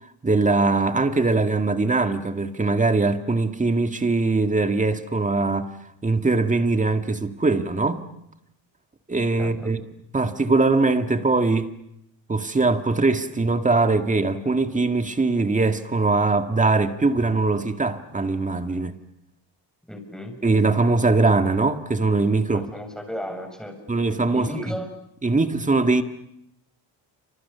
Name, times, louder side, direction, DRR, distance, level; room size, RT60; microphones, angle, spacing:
voice 1, 0.2-5.7 6.0-8.0 9.1-9.8 10.1-11.7 12.3-18.9 20.4-22.7 23.9-24.7 25.2-26.0, right 3 dB, 15° right, 2.0 m, -21 dB
voice 2, 9.4-9.7 19.9-20.3 22.5-23.7 24.3-24.9, equal, ahead, 6.5 m, -34 dB
29.0 x 27.0 x 6.9 m
cardioid pair, 120°, 45 cm